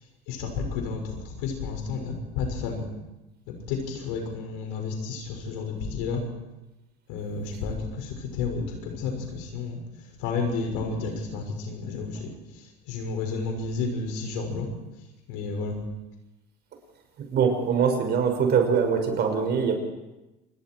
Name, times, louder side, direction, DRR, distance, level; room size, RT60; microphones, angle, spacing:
voice 1, 0.3-2.8 3.5-6.3 7.1-9.8 10.2-14.7 15.3-15.8, left 4 dB, 80° left, 3 dB, 6.1 m, -31 dB
voice 2, 17.2-19.8, right 6 dB, 50° right, 4 dB, 6.2 m, -23 dB
28.0 x 21.5 x 4.7 m, 1.0 s
supercardioid pair, 95°, 21 cm